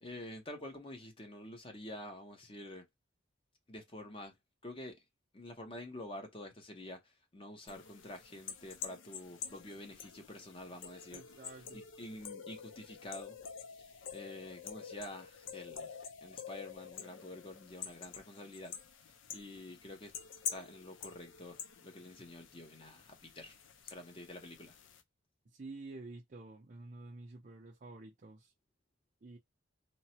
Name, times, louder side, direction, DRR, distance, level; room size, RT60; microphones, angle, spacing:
voice 1, 0.0-2.9 3.7-4.3 4.6-5.0 5.3-11.2 11.7-13.4 13.8-18.7 19.3-20.1 20.5-21.6 21.8-23.6 23.8-24.8, left 1 dB, 30° left, 0.7 m, -48 dB
sound 1, 7.7-25.0, left 7 dB, 80° left, 0.5 m, -48 dB
voice 2, 11.1-11.8 25.5-28.5 29.2-29.4, right 2 dB, 40° right, 0.5 m, -49 dB
3.0 x 2.0 x 2.7 m
head